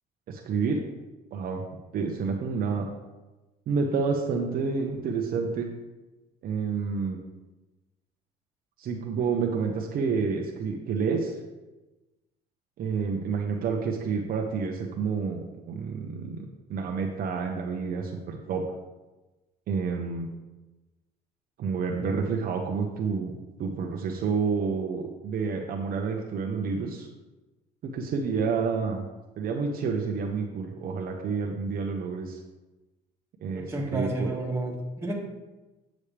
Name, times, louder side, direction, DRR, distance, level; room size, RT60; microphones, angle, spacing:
voice 1, 0.3-0.9 1.3-1.6 1.9-2.9 3.7-5.7 6.4-7.2 8.8-11.3 12.8-18.6 19.7-20.3 21.6-27.1 27.8-29.1 29.4-32.4 33.4-34.3, right 5 dB, 60° right, 1 dB, 0.9 m, -29 dB
voice 2, 33.5-35.1, right 2 dB, 15° right, -3 dB, 2.0 m, -31 dB
8.5 x 6.3 x 3.4 m, 1.1 s
cardioid pair, 110°, 17 cm